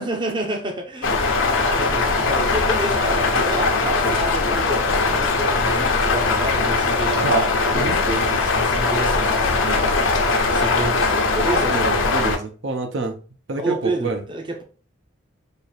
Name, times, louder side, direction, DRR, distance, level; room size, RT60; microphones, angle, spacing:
voice 1, 0.0-11.8 13.6-14.6, right 2 dB, 25° right, 0.6 m, -29 dB
sound 1, 1.0-12.4, left 3 dB, 80° left, 0.8 m, -20 dB
voice 2, 11.7-13.2 13.5-14.2, right 3 dB, 70° right, 0.7 m, -26 dB
4.4 x 2.5 x 3.3 m
head